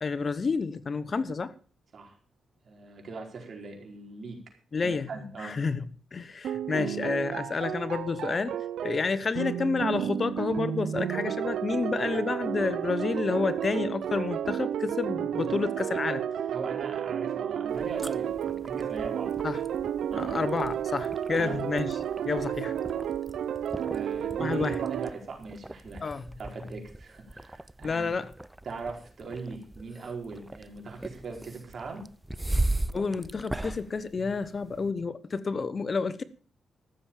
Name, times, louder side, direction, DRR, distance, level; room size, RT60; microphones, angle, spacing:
voice 1, 0.0-1.5 4.7-5.1 5.4-8.6 8.8-16.2 19.4-19.6 20.1-22.7 24.4-24.8 26.0-26.3 27.8-28.3 32.9-36.2, left 4 dB, 45° left, 1.0 m, -30 dB
voice 2, 2.6-4.4 4.8-5.6 16.5-19.3 20.1-20.4 21.4-21.6 23.9-26.0 26.4-28.1 28.6-32.0, right 4 dB, 55° right, 4.6 m, -40 dB
sound 1, 6.4-25.1, right 9 dB, 80° right, 0.7 m, -32 dB
sound 2, 17.7-34.9, right 1 dB, 10° right, 0.7 m, -38 dB
14.0 x 7.3 x 7.2 m
supercardioid pair, 60°, 0 cm